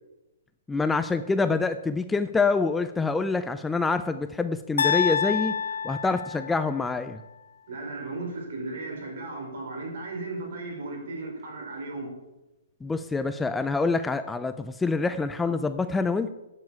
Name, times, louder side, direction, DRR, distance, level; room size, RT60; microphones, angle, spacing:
voice 1, 0.7-5.6 5.8-7.2 12.8-16.3, left 4 dB, 5° left, 10 dB, 0.3 m, -26 dB
sound 1, 4.8-6.9, left 6 dB, 75° left, 0.9 m, -27 dB
voice 2, 7.7-12.1, right 2 dB, 55° right, 2 dB, 4.5 m, -35 dB
9.5 x 7.1 x 8.6 m, 0.98 s
hypercardioid pair, 170°, 0 cm